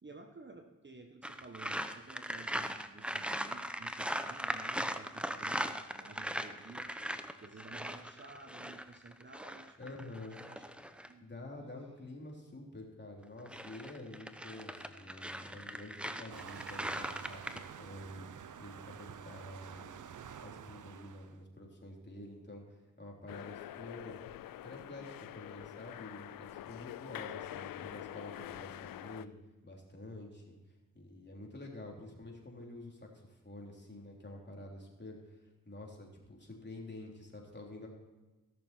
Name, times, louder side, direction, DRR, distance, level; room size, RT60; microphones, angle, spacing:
voice 1, 0.0-10.6 11.0-11.3 27.3-27.4, right 3 dB, 30° right, 5 dB, 1.2 m, -53 dB
sound 1, 1.2-11.1 13.2-17.6, equal, 5° right, 0.8 m, -39 dB
voice 2, 9.8-10.4 11.2-24.2 24.6-29.3 29.6-30.6 30.9-35.4 35.7-37.9, left 2 dB, 30° left, -1 dB, 3.4 m, -48 dB
Waves surf, 16.3-21.4, right 8 dB, 60° right, 0.7 m, -49 dB
sound 2, 23.3-29.3, left 13 dB, 75° left, 0.5 m, -46 dB
17.0 x 6.8 x 4.4 m, 1.2 s
cardioid pair, 55°, 34 cm